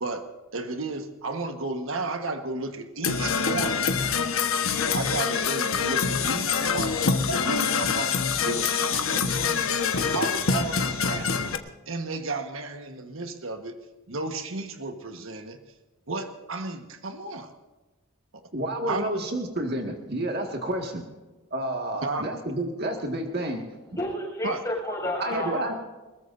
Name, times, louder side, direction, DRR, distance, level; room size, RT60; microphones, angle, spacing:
voice 1, 0.0-3.8 4.9-7.0 7.3-8.1 8.4-11.5 11.9-13.8 14.1-15.6 16.1-17.5 18.9-19.2 22.0-22.3 24.4-24.6 25.3-25.7, right 3 dB, 70° right, 6 dB, 1.4 m, -33 dB
Percussion / Brass instrument, 3.0-11.6, left 5 dB, 75° left, 1.3 m, -25 dB
voice 2, 18.5-21.0 21.5-23.6 25.2-25.7, right 1 dB, 50° right, 2 dB, 1.9 m, -30 dB
voice 3, 24.0-25.8, left 1 dB, 15° left, -3 dB, 7.3 m, -31 dB
23.0 x 21.0 x 2.7 m, 1.2 s
head